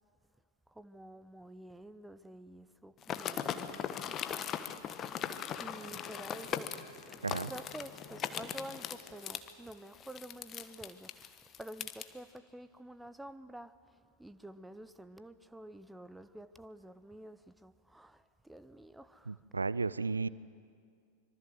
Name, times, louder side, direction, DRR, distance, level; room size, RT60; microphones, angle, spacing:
voice 1, 0.7-4.2 5.6-6.7 7.1-19.4, right 1 dB, 5° right, 0.8 m, -50 dB
sound 1, 3.0-12.1, left 9 dB, 30° left, 1.2 m, -39 dB
Wind instrument woodwind instrument, 5.4-10.0, right 4 dB, 75° left, 2.6 m, -58 dB
voice 2, 19.3-20.3, right 4 dB, 80° right, 0.6 m, -34 dB
25.0 x 23.5 x 7.7 m
figure-of-eight pair, 90°, 0 cm